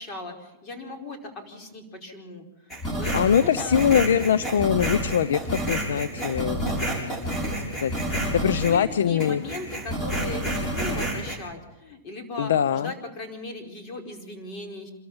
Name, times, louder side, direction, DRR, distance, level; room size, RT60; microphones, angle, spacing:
voice 1, 0.0-2.4 2.9-3.8 8.4-14.9, left 2 dB, 35° left, 3 dB, 4.8 m, -38 dB
sound 1, 2.7-8.9 9.2-11.4, right 1 dB, 20° left, 7.1 m, -29 dB
voice 2, 3.1-6.6 7.7-7.9 8.3-9.4 12.4-12.9, left 8 dB, 75° left, 14 dB, 0.7 m, -22 dB
27.0 x 13.5 x 7.3 m, 1.0 s
hypercardioid pair, 125°, 0 cm